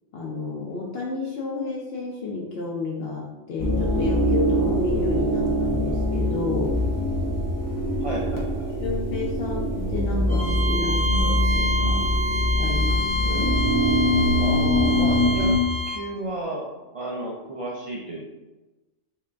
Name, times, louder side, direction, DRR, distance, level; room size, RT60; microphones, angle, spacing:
voice 1, 0.1-6.8 8.8-12.2 12.6-13.5, left 3 dB, 65° left, -3 dB, 0.7 m, -31 dB
sound 1, 3.6-15.6, equal, 25° left, 0.5 m, -23 dB
voice 2, 8.0-8.7 14.4-15.5 15.9-18.3, right 1 dB, 60° right, -4 dB, 0.3 m, -33 dB
Bowed string instrument, 10.3-16.0, equal, 90° right, 1.2 m, -28 dB
3.7 x 2.4 x 3.3 m, 1.1 s
omnidirectional pair, 1.2 m